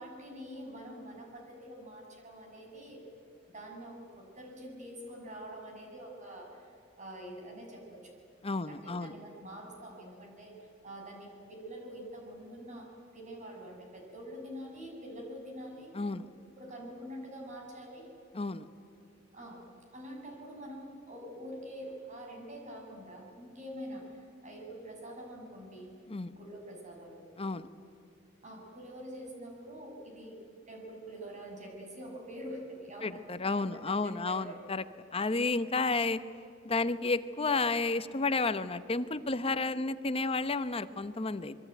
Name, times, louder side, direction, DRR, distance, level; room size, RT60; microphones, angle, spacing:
voice 1, 0.0-3.0 3.5-8.1 8.7-15.9 16.6-18.1 19.3-19.6 19.9-26.0 26.3-27.2 28.4-30.4 30.7-34.6, equal, 40° right, 1 dB, 6.5 m, -46 dB
voice 2, 8.4-9.1 15.9-16.3 18.3-18.7 26.1-26.3 27.4-27.7 33.0-34.9 35.1-36.2 36.6-41.6, left 3 dB, 30° left, 13 dB, 0.9 m, -31 dB
26.5 x 22.5 x 9.2 m, 2.6 s
head